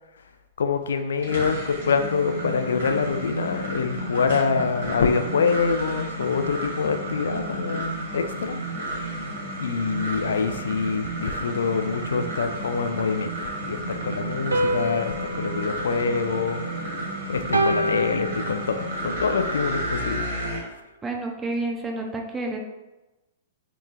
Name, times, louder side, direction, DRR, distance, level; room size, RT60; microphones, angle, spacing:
voice 1, 0.6-8.6 8.9-9.3 9.6-20.3, left 5 dB, 70° left, 7 dB, 0.3 m, -26 dB
sound 1, 1.0-20.6, right 1 dB, 65° right, 1.3 m, -32 dB
sound 2, 14.5-17.0 17.5-19.1, right 1 dB, 85° right, 0.3 m, -28 dB
voice 2, 21.0-22.6, right 2 dB, 15° right, 1 dB, 0.5 m, -29 dB
3.0 x 2.2 x 3.7 m, 1.0 s
figure-of-eight pair, 110°, 0 cm